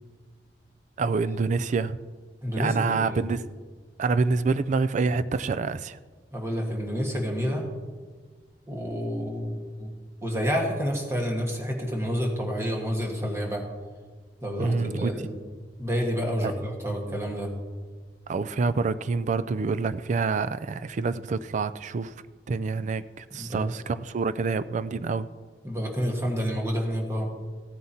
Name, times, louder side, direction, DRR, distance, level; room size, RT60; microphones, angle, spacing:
voice 1, 1.0-2.0 2.6-3.4 4.0-6.0 14.6-15.1 16.4-16.5 18.3-22.1 22.5-25.3, right 4 dB, 45° right, 0.3 m, -27 dB
voice 2, 2.4-3.2 6.3-7.7 8.7-9.9 10.2-13.6 14.4-15.4 15.8-17.5 23.3-23.6 25.6-27.3, equal, 15° right, 1.5 m, -29 dB
15.5 x 9.5 x 2.8 m
head